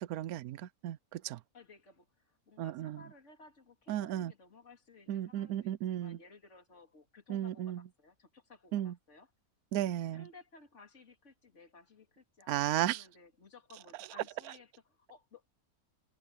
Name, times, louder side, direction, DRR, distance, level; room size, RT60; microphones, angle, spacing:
voice 1, 0.0-1.4 2.6-3.0 3.9-4.3 5.1-6.2 7.3-7.8 8.7-8.9 9.7-10.3 12.5-13.0, right 12 dB, 75° right, 1.1 m, -34 dB
voice 2, 1.5-9.3 10.1-15.4, left 3 dB, 50° left, 3.1 m, -58 dB
omnidirectional pair, 1.6 m